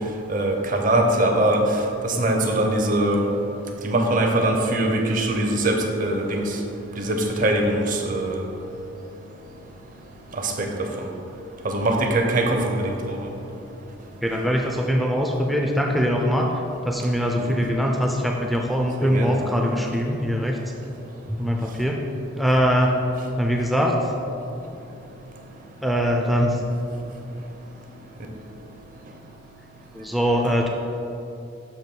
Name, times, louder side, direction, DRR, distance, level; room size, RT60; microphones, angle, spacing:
voice 1, 0.3-1.7 2.0-3.2 3.8-6.5 7.0-8.4 10.3-11.1 11.6-13.2 17.4-17.6 19.0-19.4, right 1 dB, 40° right, 2 dB, 0.6 m, -22 dB
voice 2, 14.2-20.6 21.3-22.0 22.4-23.0 23.4-24.1 25.8-26.6 29.9-30.7, equal, ahead, 0 dB, 0.4 m, -22 dB
7.0 x 3.0 x 5.9 m, 2.8 s
head